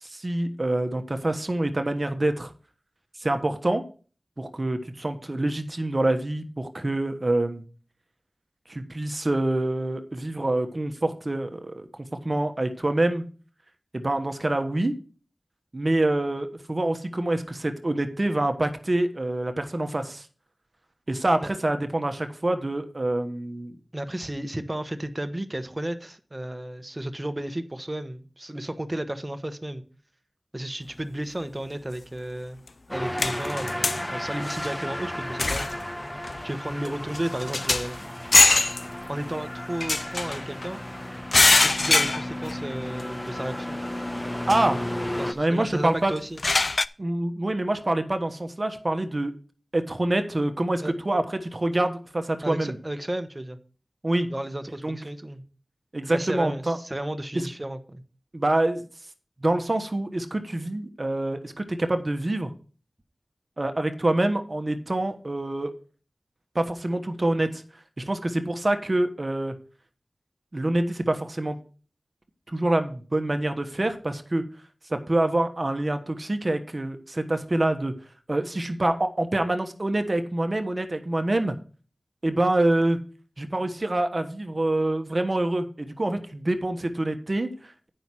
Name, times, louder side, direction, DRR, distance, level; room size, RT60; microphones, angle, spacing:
voice 1, 0.0-2.5 3.2-3.8 4.4-7.6 8.7-11.9 12.2-13.2 13.9-14.9 15.7-20.3 21.1-23.7 44.5-44.8 45.3-46.1 47.0-49.3 49.7-52.8 54.0-54.3 54.8-55.0 55.9-56.8 57.3-57.5 58.3-58.8 59.4-62.5 63.6-65.7 66.5-67.6 68.0-69.5 70.5-71.6 72.5-74.4 74.8-77.9 78.3-81.5 82.2-83.0 83.4-87.9, right 1 dB, 45° right, 1.1 m, -26 dB
voice 2, 23.9-29.8 30.5-32.6 32.9-35.7 36.4-38.0 39.1-40.8 41.6-43.8 45.2-46.4 50.8-50.9 52.4-53.6 54.3-55.4 56.1-58.0, right 1 dB, 30° right, 1.1 m, -33 dB
sound 1, 32.7-32.8 33.2-34.0 34.5-34.7 35.4-35.8 36.2-36.4 36.8-36.9 37.1-37.9 38.3-38.8 39.8-40.7 41.3-42.6 43.0-43.1 44.5-44.6 46.2-46.9, left 3 dB, 65° left, 0.3 m, -22 dB
sound 2, 32.9-45.3, left 1 dB, 20° left, 0.9 m, -34 dB
9.1 x 5.6 x 6.1 m
wide cardioid pair, 40°, 0 cm